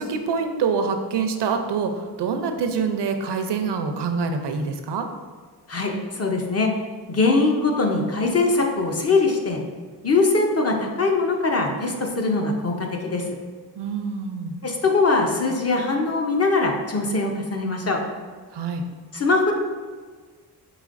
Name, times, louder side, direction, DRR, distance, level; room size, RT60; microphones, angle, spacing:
voice 1, 0.0-5.1 13.8-14.6 18.5-18.8, right 5 dB, 80° right, 6 dB, 0.5 m, -25 dB
voice 2, 5.7-6.7 7.1-9.6 10.0-13.3 14.6-18.0 19.1-19.5, left 3 dB, 40° left, 2 dB, 0.6 m, -22 dB
4.9 x 3.7 x 2.5 m, 1.5 s
wide cardioid pair, 95°, 41 cm